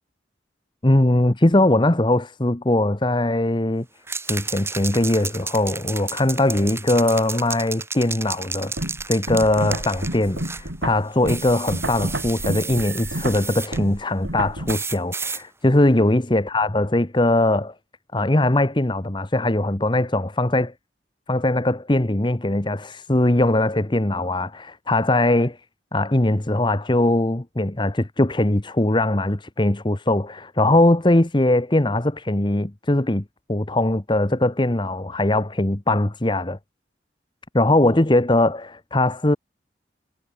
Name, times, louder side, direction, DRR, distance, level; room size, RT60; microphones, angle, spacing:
voice 1, 0.8-3.9 4.3-8.7 9.1-17.7 18.1-20.7 21.3-25.6 25.9-33.2 33.5-36.6 37.5-39.4, left 1 dB, 25° left, 1.1 m, -20 dB
sound 1, 4.1-10.7 11.3-13.8 14.7-15.4, right 4 dB, 15° right, 3.4 m, -32 dB
sound 2, 8.8-14.7, right 1 dB, 80° right, 6.6 m, -30 dB
head